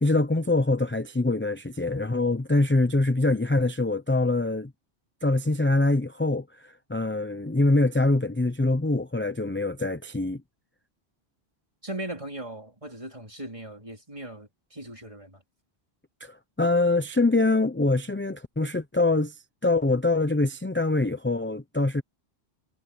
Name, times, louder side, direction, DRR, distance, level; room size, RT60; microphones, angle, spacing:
voice 1, 0.0-4.7 5.2-10.4 16.2-22.0, left 2 dB, 15° left, 0.5 m, -24 dB
voice 2, 11.8-15.4, right 1 dB, 30° right, 4.1 m, -38 dB
omnidirectional pair, 1.1 m